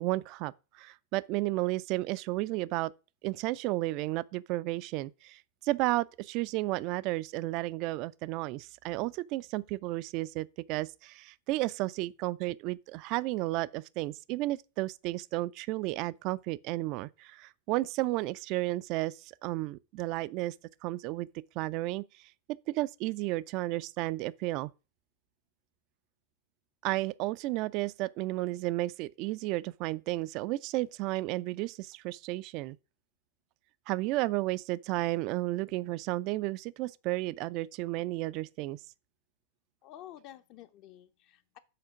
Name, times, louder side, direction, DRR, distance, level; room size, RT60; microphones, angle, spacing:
voice 1, 0.0-2.9 3.2-20.5 20.8-21.3 21.6-22.0 22.7-24.7 26.8-32.8 33.9-38.8, right 19 dB, 40° right, 0.3 m, -33 dB
voice 2, 39.8-41.6, left 12 dB, 40° left, 0.5 m, -50 dB
5.9 x 4.9 x 5.9 m
figure-of-eight pair, 90°, 0 cm